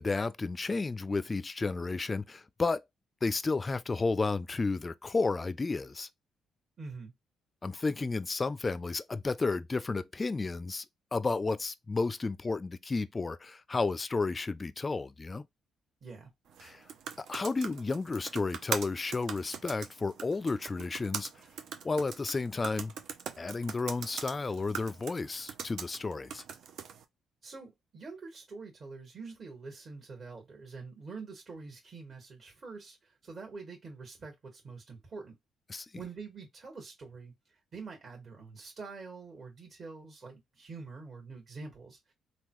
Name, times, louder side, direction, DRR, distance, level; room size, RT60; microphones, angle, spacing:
voice 1, 0.0-2.8 3.2-6.1 7.6-10.8 11.1-15.5 16.6-16.8 17.2-21.3 21.8-22.9 23.4-26.4 35.7-35.9, left 3 dB, 25° left, 0.3 m, -32 dB
voice 2, 6.8-7.1 16.0-16.3 27.4-35.3 35.9-37.3 37.7-42.1, right 4 dB, 40° right, 1.6 m, -46 dB
sound 1, 16.5-27.0, right 7 dB, 70° right, 0.6 m, -42 dB
3.6 x 2.3 x 3.0 m
cardioid pair, 90°, 0 cm